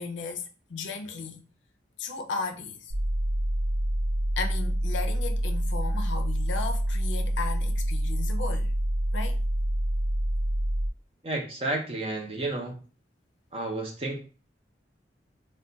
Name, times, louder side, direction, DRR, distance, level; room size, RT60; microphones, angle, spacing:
voice 1, 0.0-1.5 2.0-2.9 4.4-8.7 9.1-9.4, left 4 dB, 85° left, 0.5 m, -35 dB
sound 1, 2.9-10.9, right 1 dB, 85° right, 0.4 m, -27 dB
voice 2, 11.2-12.8 13.5-14.2, right 2 dB, 30° right, 0.6 m, -31 dB
2.3 x 2.2 x 3.9 m
head